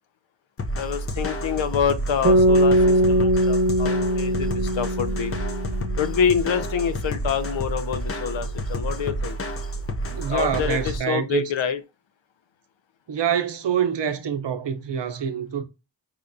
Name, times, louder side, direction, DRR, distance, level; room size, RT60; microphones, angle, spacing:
sound 1, 0.6-11.0, right 1 dB, 30° left, 0.5 m, -30 dB
voice 1, 0.8-5.4 6.0-9.4 10.3-11.8, left 7 dB, 80° left, 0.6 m, -26 dB
sound 2, 2.2-6.5, equal, 25° right, 1.1 m, -21 dB
voice 2, 10.1-11.5 13.1-15.6, right 8 dB, 70° right, 0.7 m, -26 dB
5.0 x 2.2 x 2.6 m
wide cardioid pair, 85°, 45 cm